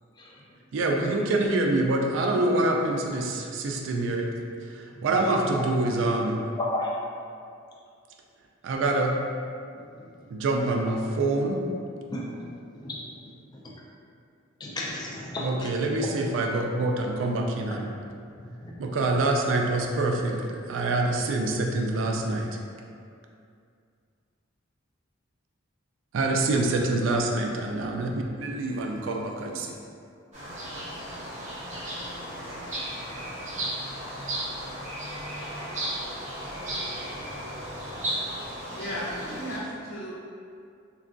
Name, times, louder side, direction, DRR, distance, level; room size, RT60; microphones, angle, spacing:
voice 1, 0.7-4.3 4.7-6.4 8.6-9.1 10.3-11.6 15.4-17.9 18.8-22.5 26.1-29.7, right 2 dB, 65° right, 1 dB, 0.3 m, -26 dB
voice 2, 6.6-6.9 12.1-12.5 12.8-13.0 14.6-15.7 18.6-18.7, left 2 dB, 20° left, -5 dB, 0.4 m, -32 dB
sound 1, 30.3-39.6, right 1 dB, 40° right, 0.8 m, -35 dB
voice 3, 38.7-40.1, equal, 60° left, -7 dB, 0.7 m, -35 dB
3.4 x 2.2 x 2.5 m, 2.3 s
head